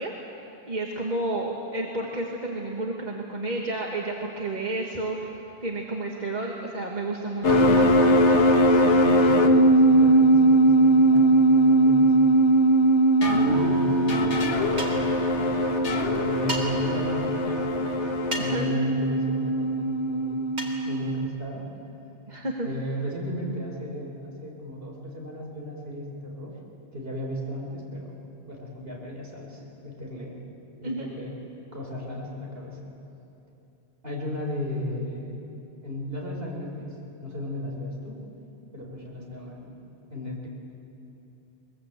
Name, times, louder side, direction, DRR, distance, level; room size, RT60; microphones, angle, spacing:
voice 1, 0.0-8.2 18.4-18.7 22.3-22.7 30.8-31.1, right 2 dB, 40° right, -1 dB, 1.7 m, -31 dB
sound 1, 7.4-21.3, right 1 dB, 90° left, 1.9 m, -20 dB
voice 2, 8.8-9.4 9.7-12.3 13.2-14.4 14.7-15.7 16.2-20.4 20.8-21.7 22.6-26.5 26.9-28.1 28.5-30.4 30.8-31.4 31.7-32.8 34.0-35.5 35.8-36.9 37.2-38.2 38.7-39.8 40.1-40.5, left 1 dB, 55° right, -2 dB, 4.8 m, -35 dB
sound 2, 14.8-15.1 16.5-16.6 18.3-18.7 20.6-20.8, right 1 dB, 75° right, 2.7 m, -32 dB
22.0 x 21.5 x 8.3 m, 2.9 s
omnidirectional pair, 1.1 m